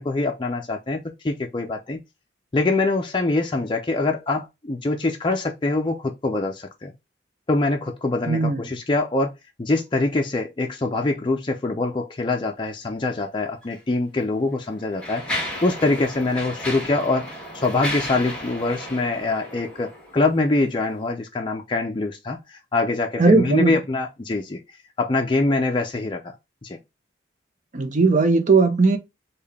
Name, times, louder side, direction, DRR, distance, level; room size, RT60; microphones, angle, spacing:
voice 1, 0.0-2.0 2.5-6.9 7.5-9.3 9.6-15.3 15.6-24.6 25.0-26.3 26.6-26.8, left 2 dB, 25° left, 0.5 m, -24 dB
voice 2, 8.3-8.6 23.2-23.8 27.7-29.0, right 3 dB, 45° right, 0.7 m, -18 dB
Mechanisms, 13.6-13.8 14.5-20.3, left 1 dB, 5° left, 1.4 m, -33 dB
3.7 x 2.3 x 3.3 m
head